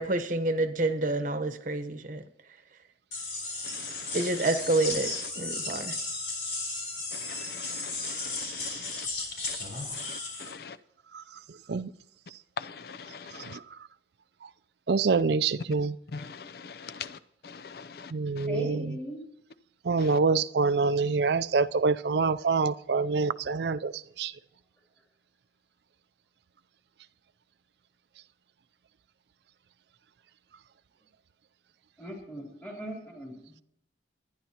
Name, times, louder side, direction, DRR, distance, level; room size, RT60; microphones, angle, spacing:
voice 1, 0.0-2.2 4.1-6.0, right 2 dB, 45° right, 1.0 m, -28 dB
sound 1, 3.1-10.5, left 3 dB, 80° left, 4.2 m, -35 dB
voice 2, 7.2-9.0 9.5-9.6 9.9-10.8 12.6-13.6 16.1-17.1 17.4-18.1 18.4-18.5, left 5 dB, 55° left, 0.5 m, -42 dB
voice 3, 11.5-11.9 13.3-13.8 14.4-14.5 14.9-16.0 18.1-19.0 19.8-24.4, right 4 dB, 65° right, 0.4 m, -26 dB
voice 4, 18.5-19.2 32.0-33.5, equal, 10° left, 3.3 m, -39 dB
22.0 x 10.0 x 2.9 m
head